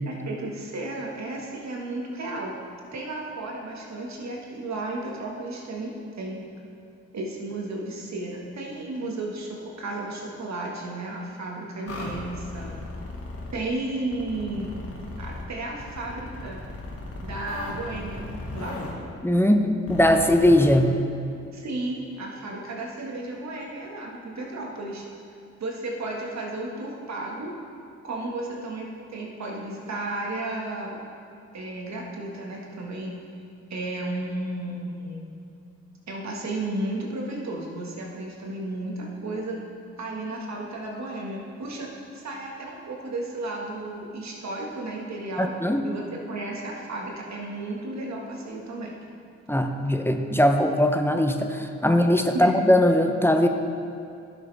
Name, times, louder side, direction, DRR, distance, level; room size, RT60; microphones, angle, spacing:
voice 1, 0.1-2.6 2.9-6.4 7.1-12.7 13.5-14.7 15.2-16.6 17.2-18.3 18.5-18.8 21.5-25.0 25.6-27.5 28.0-31.0 31.5-33.2 33.7-35.2 36.1-39.6 40.0-45.5 45.8-49.0 52.3-52.5, right 2 dB, 65° right, -2 dB, 1.7 m, -33 dB
sound 1, 11.9-13.5 14.1-15.4 15.8-18.9 19.9-20.7, left 2 dB, 55° left, 1.6 m, -36 dB
voice 2, 19.2-20.9 45.4-45.8 49.5-53.5, left 1 dB, 10° left, 5 dB, 0.7 m, -20 dB
11.5 x 6.4 x 3.4 m, 2.5 s
supercardioid pair, 45°, 29 cm